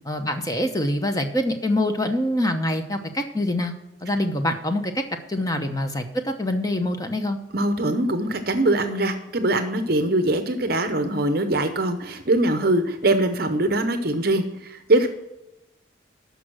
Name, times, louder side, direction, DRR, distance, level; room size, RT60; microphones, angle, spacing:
voice 1, 0.1-3.7 4.0-5.0 5.3-7.4, left 1 dB, 20° left, 6 dB, 0.9 m, -25 dB
voice 2, 7.5-15.1, right 1 dB, 50° right, 8 dB, 0.8 m, -22 dB
13.0 x 5.3 x 6.1 m, 0.98 s
head